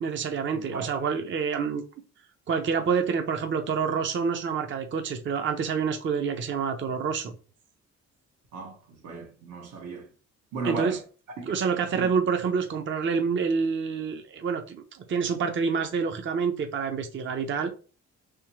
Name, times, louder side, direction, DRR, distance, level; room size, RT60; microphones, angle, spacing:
voice 1, 0.0-1.8 2.5-7.4 10.6-11.0 11.5-14.8 15.1-17.7, right 6 dB, 40° right, 0.6 m, -27 dB
voice 2, 8.5-10.1 10.5-11.0 11.4-11.5 11.9-12.1, right 3 dB, 80° right, 1.4 m, -36 dB
3.5 x 3.4 x 3.0 m
cardioid pair, 90°, 30 cm